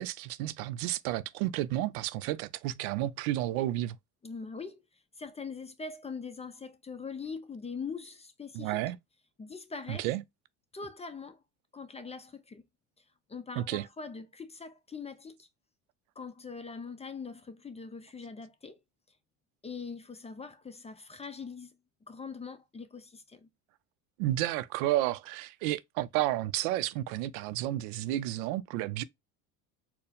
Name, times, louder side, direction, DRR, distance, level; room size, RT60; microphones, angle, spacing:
voice 1, 0.0-4.0 8.5-9.0 9.9-10.2 13.6-13.9 24.2-29.0, right 15 dB, 70° right, 0.5 m, -31 dB
voice 2, 4.2-4.8 5.2-8.8 9.4-10.1 10.7-11.4 11.7-12.6 13.3-15.5 16.2-18.8 19.6-21.7 22.1-23.5, left 5 dB, 15° left, 0.5 m, -42 dB
4.3 x 2.1 x 3.4 m
hypercardioid pair, 80°, 44 cm